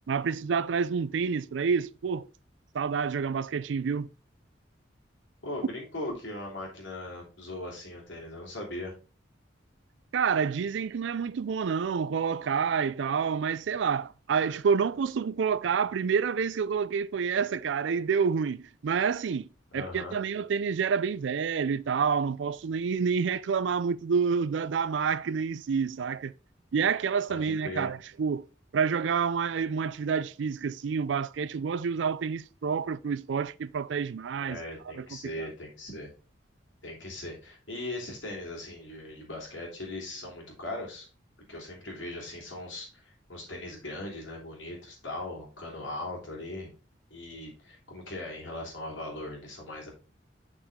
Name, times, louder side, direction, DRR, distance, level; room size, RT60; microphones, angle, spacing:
voice 1, 0.1-2.3 2.7-4.1 10.1-19.5 19.7-26.3 26.7-28.5 28.7-34.6 35.0-35.1 35.4-35.5, right 6 dB, 75° right, 0.4 m, -28 dB
voice 2, 5.4-8.9 19.7-20.1 27.3-27.9 34.4-36.1 36.8-41.1 41.5-46.7 47.1-49.9, left 1 dB, 90° left, 3.3 m, -39 dB
6.4 x 6.1 x 3.7 m
head